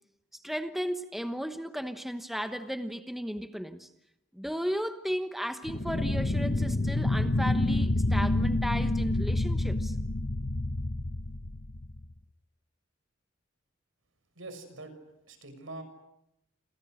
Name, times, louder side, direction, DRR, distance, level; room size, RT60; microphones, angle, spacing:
voice 1, 0.3-3.9 4.3-9.9, equal, ahead, 8 dB, 1.1 m, -35 dB
sound 1, 5.7-12.1, left 2 dB, 40° left, 1.0 m, -28 dB
voice 2, 14.4-14.9 15.3-15.8, right 2 dB, 75° right, 9 dB, 6.3 m, -43 dB
30.0 x 27.5 x 6.6 m, 0.81 s
head